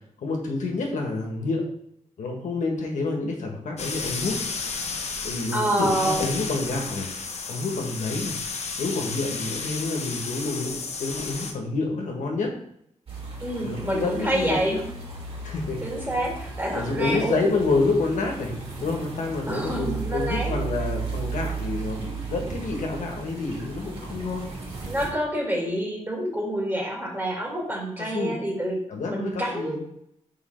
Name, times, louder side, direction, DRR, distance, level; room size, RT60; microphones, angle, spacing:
voice 1, 0.2-1.7 2.2-4.4 5.2-7.1 7.5-8.4 8.8-12.5 13.6-14.9 15.4-15.8 16.7-18.5 18.8-24.5 28.0-28.4 28.9-29.8, left 3 dB, 90° left, 1 dB, 1.4 m, -28 dB
sound 1, 3.8-11.5, left 4 dB, 60° left, 0.9 m, -33 dB
voice 2, 5.5-6.2 13.4-14.8 15.8-17.6 19.5-20.6 24.8-28.8 29.1-29.8, right 1 dB, 15° right, -2 dB, 2.3 m, -27 dB
sound 2, 13.1-25.1, right 4 dB, 50° right, 2.8 m, -35 dB
5.3 x 4.9 x 4.4 m, 0.72 s
wide cardioid pair, 100°, 12 cm